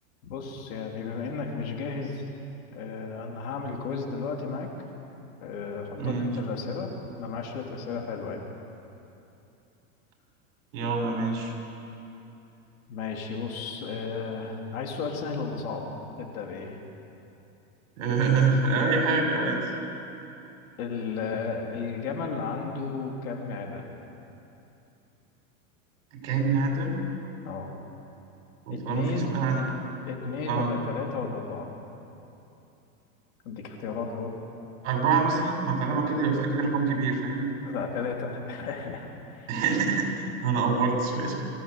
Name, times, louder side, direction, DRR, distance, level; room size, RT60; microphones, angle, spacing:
voice 1, 0.2-2.2 2.7-4.7 5.4-6.9 7.2-8.4 12.9-15.9 16.2-16.8 20.8-23.9 27.4-27.7 28.7-29.4 30.1-31.7 33.4-34.3 37.6-39.5, left 5 dB, 70° left, 1 dB, 3.8 m, -33 dB
voice 2, 6.0-6.3 10.7-11.5 18.0-19.6 26.1-27.0 28.7-29.6 30.5-30.7 34.8-37.5 39.5-40.1 40.4-41.4, right 4 dB, 60° right, 2 dB, 5.6 m, -25 dB
24.0 x 15.0 x 7.9 m, 2.9 s
supercardioid pair, 150°, 43 cm